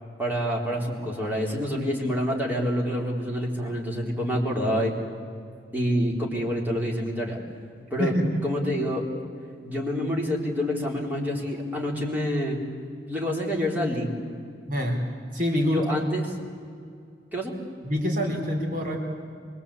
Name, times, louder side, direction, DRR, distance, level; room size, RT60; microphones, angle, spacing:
voice 1, 0.2-4.9 5.7-7.4 7.9-8.1 8.4-9.0 9.6-12.6 13.1-14.1 15.7-16.2 17.3-17.5, equal, 10° right, -2 dB, 3.8 m, -27 dB
voice 2, 8.0-8.4 14.7-15.0 15.3-15.8 17.8-19.0, equal, 50° right, 0 dB, 3.9 m, -25 dB
24.5 x 22.0 x 8.5 m, 2.3 s
head